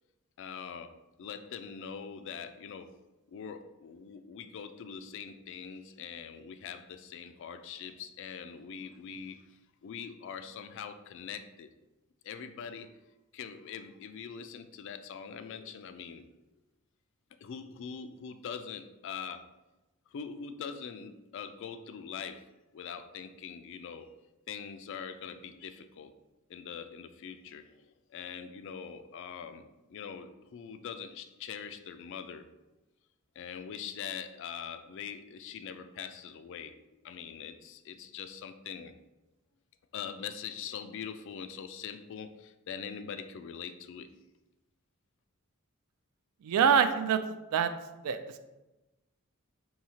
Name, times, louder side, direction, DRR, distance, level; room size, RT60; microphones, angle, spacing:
voice 1, 0.4-3.0 3.3-9.4 9.8-11.7 12.2-13.0 13.3-16.3 17.4-19.5 20.1-22.5 22.7-24.2 24.5-26.2 26.5-32.5 33.4-36.8 37.0-38.9 39.9-44.1, left 7 dB, 55° left, 10 dB, 0.3 m, -43 dB
voice 2, 46.4-47.2 47.5-47.7 48.0-48.4, right 7 dB, 85° right, 9 dB, 0.3 m, -25 dB
5.7 x 2.7 x 2.7 m, 1.0 s
head